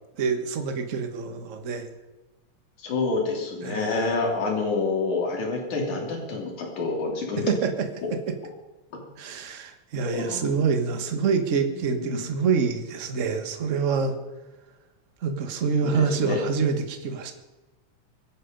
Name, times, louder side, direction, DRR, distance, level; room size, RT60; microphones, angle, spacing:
voice 1, 0.2-1.9 3.6-4.1 7.5-7.9 9.2-14.1 15.2-17.3, right 5 dB, 40° right, 6 dB, 1.1 m, -26 dB
voice 2, 2.8-7.4 8.9-9.0 10.1-10.4 11.7-12.2 15.8-15.9 16.2-16.4, left 3 dB, 75° left, 1 dB, 4.3 m, -28 dB
25.0 x 9.5 x 5.2 m, 1.1 s
omnidirectional pair, 3.4 m